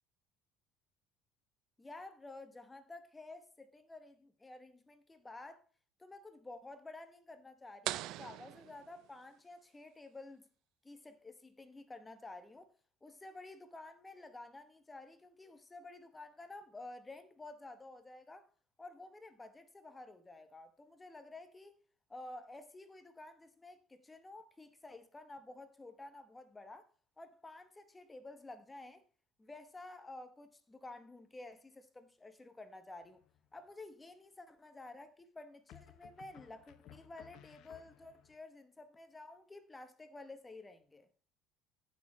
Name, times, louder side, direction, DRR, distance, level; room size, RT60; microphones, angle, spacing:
voice 1, 1.8-5.6 6.0-10.5 10.8-12.7 13.0-18.5 18.8-21.7 22.1-26.9 27.2-29.0 29.4-33.2 33.5-41.1, left 2 dB, 15° left, 0.9 m, -52 dB
sound 1, 7.8-9.5, right 15 dB, 65° right, 0.4 m, -42 dB
sound 2, 33.0-33.6 35.7-38.4, left 11 dB, 60° left, 0.9 m, -59 dB
15.0 x 6.4 x 3.1 m
supercardioid pair, 105°, 0 cm